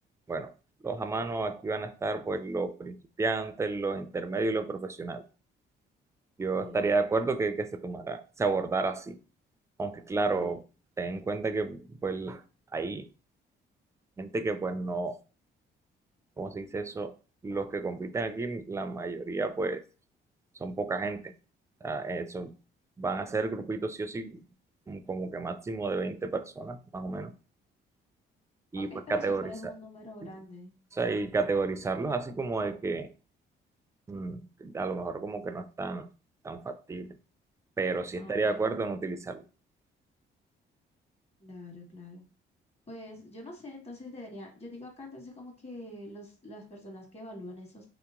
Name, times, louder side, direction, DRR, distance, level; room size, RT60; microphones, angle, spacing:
voice 1, 0.8-5.2 6.4-9.2 9.8-10.6 11.0-12.4 12.7-13.1 14.2-15.2 16.4-17.1 17.4-19.8 20.5-21.3 21.8-22.5 23.0-24.4 24.9-27.3 28.7-29.7 30.2-30.3 30.9-33.1 34.1-36.1 36.4-37.2 37.8-39.4, right 3 dB, 15° right, 0.4 m, -32 dB
voice 2, 6.5-6.9 10.3-10.6 28.7-30.7 38.1-38.7 41.4-42.2 42.9-47.8, left 1 dB, 30° left, 1.4 m, -45 dB
2.9 x 2.9 x 3.7 m
cardioid pair, 90°, 20 cm